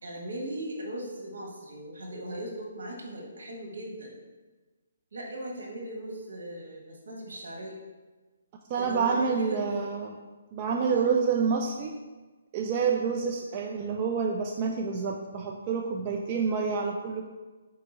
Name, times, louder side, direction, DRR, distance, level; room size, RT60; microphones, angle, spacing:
voice 1, 0.0-4.1 5.1-7.8 8.7-9.6 10.9-11.1, right 1 dB, 75° right, -1 dB, 1.3 m, -38 dB
voice 2, 8.7-10.1 10.5-11.9 12.5-17.3, right 5 dB, 25° right, 1 dB, 0.3 m, -28 dB
4.6 x 2.8 x 3.8 m, 1.3 s
hypercardioid pair, 160°, 0 cm